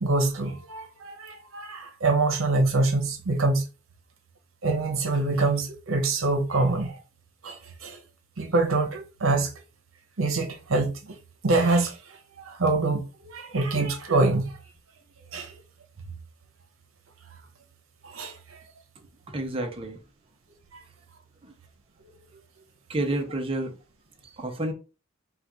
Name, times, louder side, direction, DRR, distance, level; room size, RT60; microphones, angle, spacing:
voice 1, 0.0-3.6 4.6-7.0 7.4-8.0 8.4-9.5 10.2-11.1 11.4-12.0 12.4-14.6 15.3-15.5 18.0-18.3, right 3 dB, 75° right, 0.8 m, -25 dB
voice 2, 19.3-20.0 21.4-21.5 22.9-23.7 24.4-24.7, right 1 dB, 30° right, 0.7 m, -29 dB
4.0 x 2.4 x 4.7 m
head